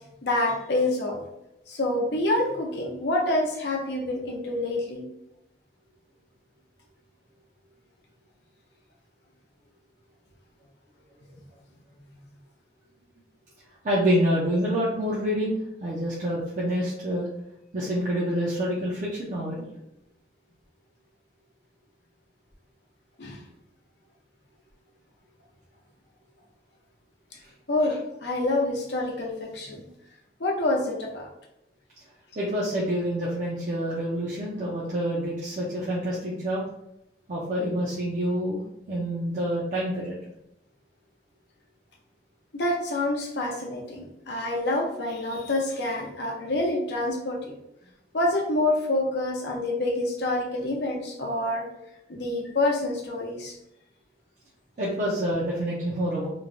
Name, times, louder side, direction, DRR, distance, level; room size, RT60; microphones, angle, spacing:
voice 1, 0.2-1.2 1.7-5.1 23.2-23.4 27.7-29.8 30.4-31.3 42.5-47.5 48.1-51.6 52.1-53.5, left 2 dB, 75° left, -1 dB, 0.7 m, -27 dB
voice 2, 13.8-17.3 17.7-19.7 27.4-27.5 32.4-36.6 37.3-38.6 38.9-40.2 54.8-56.3, equal, 45° right, -6 dB, 0.5 m, -27 dB
3.1 x 2.2 x 2.5 m, 0.83 s
head